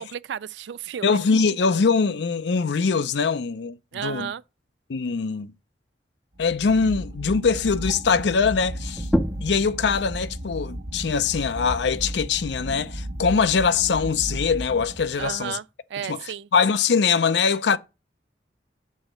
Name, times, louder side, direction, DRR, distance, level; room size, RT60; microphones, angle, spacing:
voice 1, 0.0-1.2 3.9-4.4 15.2-16.5, right 8 dB, 75° right, 0.3 m, -33 dB
voice 2, 1.0-4.3 4.9-5.5 6.4-9.1 9.4-15.6 16.1-16.2 16.5-17.8, left 5 dB, 75° left, 0.5 m, -22 dB
sound 1, 6.4-15.5, right 1 dB, 60° right, 1.1 m, -35 dB
sound 2, 8.9-14.2, equal, ahead, 0.4 m, -33 dB
6.4 x 4.0 x 6.3 m
head